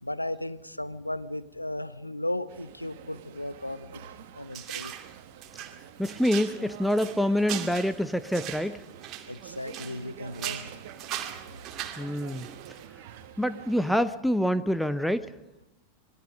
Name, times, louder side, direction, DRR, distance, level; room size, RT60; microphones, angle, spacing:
voice 1, 0.0-4.0 4.3-4.9 9.3-10.8, left 1 dB, 85° left, 15 dB, 0.9 m, -35 dB
sound 1, 2.5-14.1, right 10 dB, 50° right, 1.8 m, -48 dB
sound 2, 4.5-5.1 5.4-10.1 10.3-12.9, right 11 dB, 35° right, 2.6 m, -39 dB
voice 2, 6.0-8.8 12.0-12.5 13.4-15.3, equal, ahead, 13 dB, 0.9 m, -26 dB
26.5 x 22.0 x 5.4 m, 0.86 s
figure-of-eight pair, 90°, 0 cm